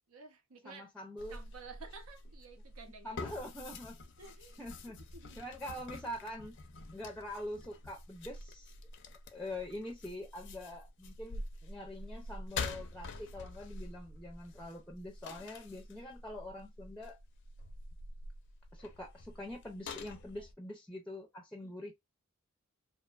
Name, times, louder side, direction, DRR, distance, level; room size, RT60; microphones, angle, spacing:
voice 1, 0.1-0.9 1.3-3.4 4.2-4.6 5.1-5.5 20.3-20.5 21.6-21.7, right 4 dB, 90° right, 0.7 m, -53 dB
voice 2, 0.6-1.4 3.0-4.0 4.6-5.0 5.4-6.5 6.9-8.7 9.3-17.2 18.7-21.9, left 1 dB, 5° left, 0.4 m, -44 dB
sound 1, 1.2-20.5, left 3 dB, 55° left, 0.5 m, -47 dB
2.6 x 2.2 x 2.3 m
head